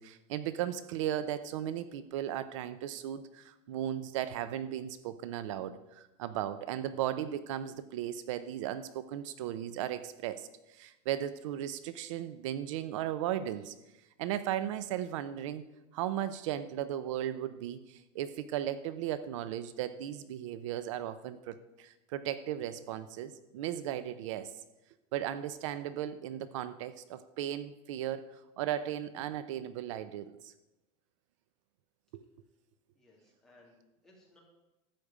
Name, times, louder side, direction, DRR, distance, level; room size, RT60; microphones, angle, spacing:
voice 1, 0.0-13.7 14.2-15.6 15.9-24.5 25.1-28.2 28.6-30.5 32.1-32.2, right 11 dB, 70° right, 13 dB, 0.7 m, -36 dB
voice 2, 33.0-34.4, left 2 dB, 5° left, -4 dB, 2.7 m, -62 dB
13.0 x 5.2 x 8.6 m, 0.97 s
supercardioid pair, 175°, 16 cm